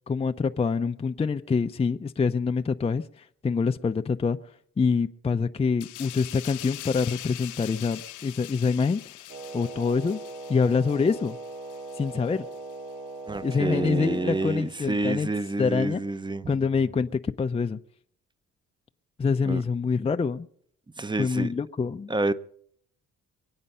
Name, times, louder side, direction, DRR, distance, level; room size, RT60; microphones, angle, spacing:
voice 1, 0.1-4.4 4.8-9.0 9.5-10.2 10.5-11.4 12.0-12.5 13.4-15.3 15.6-16.0 16.5-17.8 19.2-20.5 21.2-22.1, left 5 dB, 20° left, 0.6 m, -26 dB
sound 1, 5.8-13.0 13.3-13.5, left 16 dB, 80° left, 0.6 m, -43 dB
Wind instrument woodwind instrument, 9.3-14.6, right 2 dB, 55° right, 4.1 m, -40 dB
voice 2, 13.3-16.5 19.5-19.6 21.0-21.5 22.1-22.3, right 3 dB, 15° right, 0.8 m, -28 dB
23.0 x 8.8 x 5.5 m
cardioid pair, 90°, 30 cm